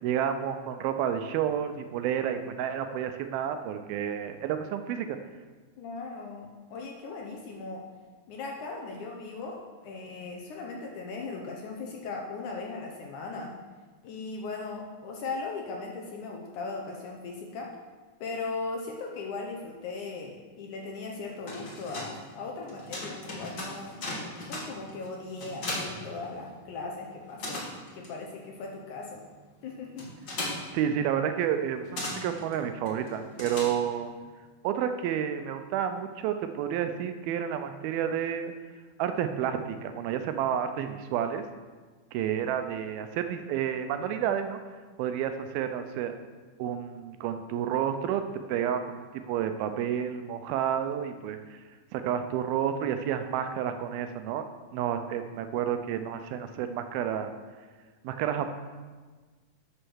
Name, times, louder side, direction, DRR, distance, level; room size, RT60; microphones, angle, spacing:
voice 1, 0.0-5.2 30.7-34.1 34.6-38.5 39.0-41.4 42.1-44.6 45.0-46.1 46.6-48.2 48.5-51.6 51.9-54.4 54.7-57.3 58.0-58.5, right 9 dB, 85° right, 8 dB, 2.5 m, -30 dB
voice 2, 5.8-7.9 8.3-13.6 14.0-17.8 18.2-24.0 24.4-27.7 27.9-29.2 29.6-30.1, left 3 dB, 70° left, 0 dB, 2.1 m, -38 dB
sound 1, 21.2-26.8 27.1-34.2, left 1 dB, 40° left, 1.9 m, -39 dB
8.1 x 6.5 x 6.3 m, 1.4 s
omnidirectional pair, 4.3 m